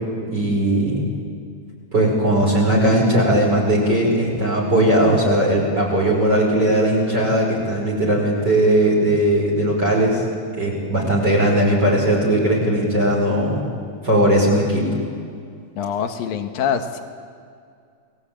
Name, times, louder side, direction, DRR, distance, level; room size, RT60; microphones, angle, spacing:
voice 1, 0.3-1.1 1.9-10.2 10.6-13.6 14.0-14.8, right 1 dB, 25° right, -3 dB, 5.9 m, -18 dB
voice 2, 15.8-17.0, left 7 dB, 65° left, 7 dB, 2.8 m, -24 dB
29.5 x 20.5 x 8.9 m, 2.2 s
omnidirectional pair, 4.7 m